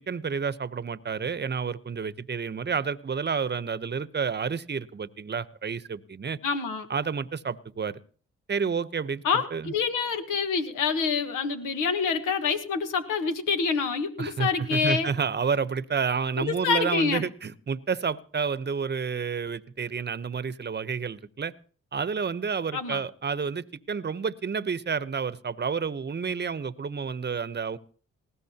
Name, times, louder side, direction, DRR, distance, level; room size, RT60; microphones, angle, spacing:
voice 1, 0.0-6.4 6.9-8.0 8.5-9.2 9.5-9.7 14.2-21.5 21.9-27.8, right 6 dB, 35° right, 15 dB, 0.9 m, -30 dB
voice 2, 6.4-6.9 9.2-15.1 16.4-17.2 22.7-23.0, left 5 dB, 85° left, 7 dB, 1.5 m, -27 dB
19.5 x 15.5 x 2.9 m, 0.43 s
supercardioid pair, 50°, 30 cm